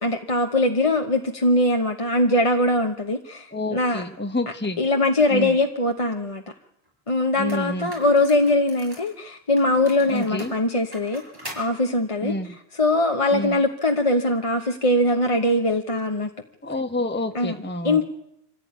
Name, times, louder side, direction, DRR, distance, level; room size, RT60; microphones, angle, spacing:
voice 1, 0.0-4.0 4.8-6.4 7.1-11.2 11.6-12.4 12.7-16.3 17.3-17.5 17.8-18.0, left 1 dB, 35° left, 3 dB, 1.2 m, -21 dB
voice 2, 3.5-4.8 5.3-5.5 7.4-7.9 10.1-10.5 12.2-12.6 13.3-13.6 16.6-18.0, left 2 dB, 10° left, 6 dB, 1.2 m, -28 dB
sound 1, 6.9-7.0 7.5-9.1 9.6-11.7, equal, 20° right, 6.1 m, -41 dB
25.5 x 15.5 x 9.5 m, 0.80 s
omnidirectional pair, 1.0 m